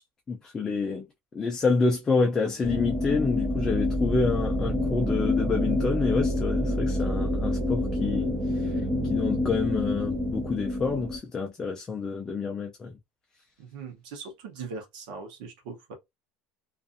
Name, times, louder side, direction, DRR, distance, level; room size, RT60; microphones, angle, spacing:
voice 1, 0.3-1.1 1.3-8.3 8.6-8.7 9.0-12.9, left 4 dB, 15° left, 0.4 m, -28 dB
sound 1, 2.6-11.2, left 1 dB, 15° right, 0.7 m, -27 dB
voice 2, 13.6-15.9, right 5 dB, 85° right, 0.8 m, -40 dB
2.5 x 2.4 x 2.5 m
cardioid pair, 175°, 4 cm